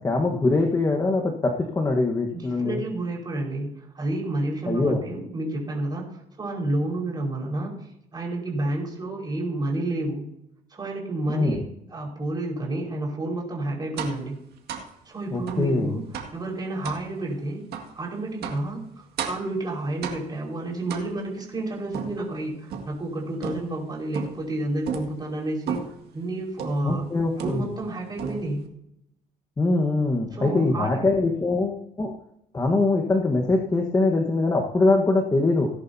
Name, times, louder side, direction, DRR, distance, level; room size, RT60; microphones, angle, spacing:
voice 1, 0.0-2.8 4.7-5.0 11.3-11.6 15.3-15.9 26.8-27.7 29.6-32.1 32.5-35.7, left 3 dB, 20° left, 1 dB, 1.3 m, -23 dB
voice 2, 2.3-7.8 8.1-10.3 10.7-14.4 15.0-16.0 16.3-17.7 17.9-27.1 27.4-28.6 30.3-31.1, right 2 dB, 25° right, -2 dB, 5.0 m, -30 dB
sound 1, 14.0-14.3 14.7-14.9 15.5-15.7 16.1-16.4 16.8-17.1 17.7-17.9 18.4-18.7 19.2-19.5 20.0-20.4 20.9-21.4 21.9-23.0 23.4-23.8 24.1-24.5 24.9-25.2 25.7-26.0 26.6-26.9 27.4-27.9 28.2-28.7, right 6 dB, 70° right, 2.1 m, -34 dB
17.5 x 11.0 x 2.8 m, 0.78 s
cardioid pair, 110°, 17 cm